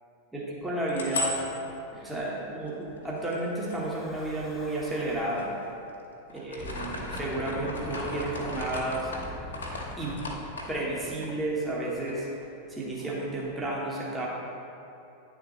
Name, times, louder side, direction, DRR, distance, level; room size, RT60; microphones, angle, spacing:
voice 1, 0.3-1.5 1.9-5.5 6.3-9.1 10.0-10.2 10.7-12.3 12.7-14.3, right 1 dB, 10° right, -5 dB, 1.0 m, -32 dB
sound 1, 0.6-4.6 5.2-6.0 6.3-11.8 12.1-12.2 12.5-13.7, left 2 dB, 70° left, 0.9 m, -38 dB
Breathing / Wind, 3.6-5.6 6.4-11.8, equal, 10° left, 0.7 m, -43 dB
9.6 x 3.7 x 3.0 m, 2.8 s
figure-of-eight pair, 90°, 0 cm